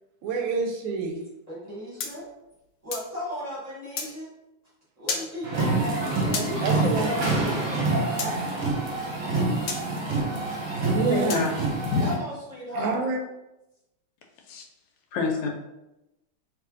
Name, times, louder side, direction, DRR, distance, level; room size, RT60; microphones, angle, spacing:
voice 1, 0.2-1.2 6.6-7.1 10.8-11.5 12.8-13.2, right 4 dB, 75° right, 3 dB, 1.3 m, -27 dB
voice 2, 1.5-2.3 2.8-4.3 5.0-8.8 12.0-13.1, equal, 20° right, -7 dB, 1.2 m, -35 dB
sound 1, 2.0-3.1 4.0-4.1 5.1-5.3 6.3-6.5 8.2-8.3 9.7-9.8 11.3-11.5, left 5 dB, 70° left, 1.0 m, -31 dB
sound 2, 5.4-12.1, right 2 dB, 55° right, 1.1 m, -27 dB
voice 3, 11.1-11.5 11.9-12.1 14.5-14.6 15.1-15.5, left 4 dB, 85° left, 2 dB, 1.5 m, -26 dB
3.4 x 3.1 x 3.7 m, 0.94 s
omnidirectional pair, 2.3 m